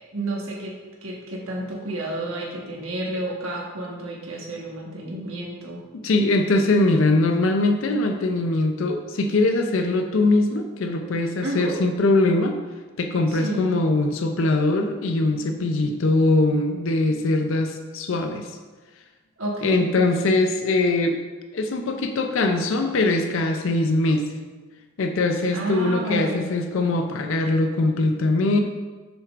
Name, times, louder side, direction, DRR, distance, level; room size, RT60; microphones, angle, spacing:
voice 1, 0.0-5.8 11.4-11.8 13.3-13.8 19.4-19.9 25.5-26.4, right 2 dB, 80° right, -2 dB, 1.3 m, -31 dB
voice 2, 5.9-12.6 13.0-18.5 19.6-21.2 21.5-24.3 25.0-28.6, left 2 dB, 70° left, 5 dB, 0.5 m, -22 dB
6.6 x 6.0 x 2.5 m, 1.3 s
head